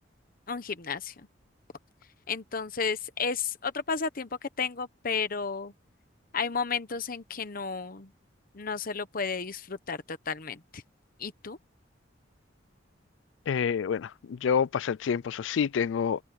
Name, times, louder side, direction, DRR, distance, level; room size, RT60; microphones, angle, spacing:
voice 1, 0.5-1.1 2.3-5.7 6.3-8.1 8.5-10.8 11.2-11.6, left 5 dB, 50° left, 1.0 m, -32 dB
voice 2, 13.5-14.1 14.4-16.2, left 7 dB, 85° left, 0.4 m, -27 dB
head